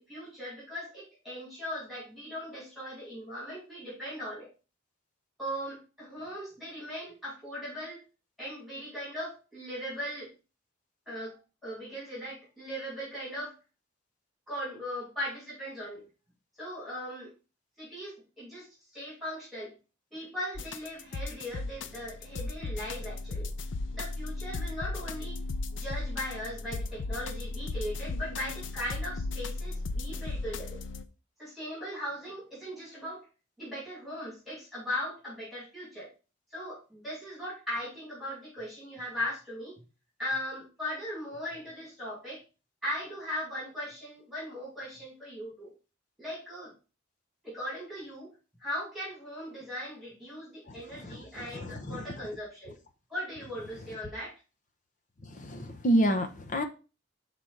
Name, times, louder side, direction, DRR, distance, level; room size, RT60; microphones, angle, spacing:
voice 1, 0.0-4.5 5.4-8.1 8.4-10.3 11.1-13.6 14.5-16.0 16.6-17.3 17.8-19.7 20.1-23.5 23.9-25.4 25.7-30.8 31.4-33.3 33.6-36.1 36.5-39.8 40.2-42.4 42.8-45.7 46.2-46.7 47.4-48.3 48.6-52.8 53.1-54.3, equal, ahead, 3.4 m, -39 dB
sound 1, 20.6-31.1, left 3 dB, 70° left, 0.5 m, -36 dB
voice 2, 51.5-52.0 55.3-56.6, right 1 dB, 40° left, 0.8 m, -28 dB
6.1 x 4.0 x 4.5 m
head